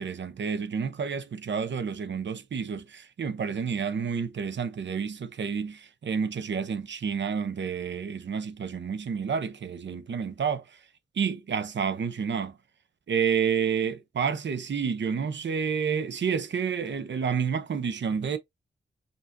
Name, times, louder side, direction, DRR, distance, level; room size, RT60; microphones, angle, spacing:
voice 1, 0.0-10.6 11.2-12.5 13.1-18.4, right 6 dB, 70° right, 0.8 m, -29 dB
5.5 x 2.6 x 2.7 m
cardioid pair, 65°, 20 cm